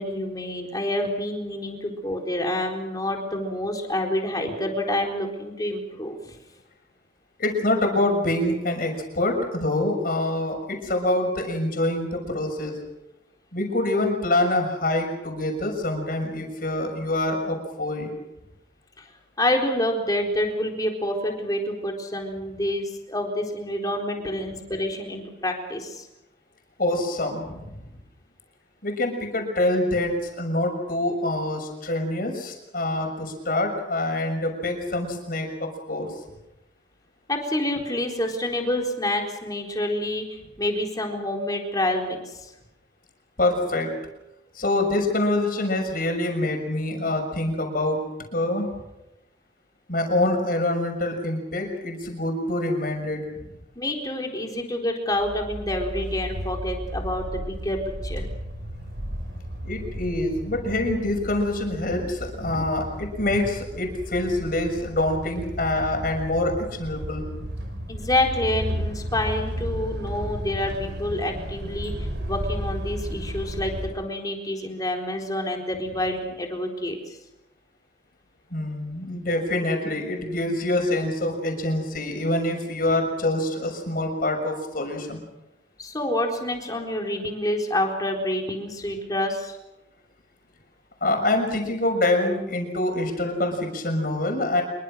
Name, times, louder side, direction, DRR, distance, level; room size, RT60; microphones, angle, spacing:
voice 1, 0.0-6.4 19.0-19.1 19.4-26.1 37.3-42.5 53.8-58.2 67.9-77.2 85.8-89.6, left 1 dB, 20° left, 2 dB, 4.1 m, -28 dB
voice 2, 7.4-12.8 13.5-18.1 26.8-27.9 28.8-36.1 43.4-43.9 44.5-48.0 48.3-48.7 49.9-53.2 59.6-67.2 78.5-85.2 91.0-94.6, left 1 dB, 50° left, 3 dB, 6.5 m, -25 dB
sound 1, 55.1-73.9, equal, 70° right, 6.1 m, -33 dB
26.5 x 23.5 x 6.4 m, 0.93 s
head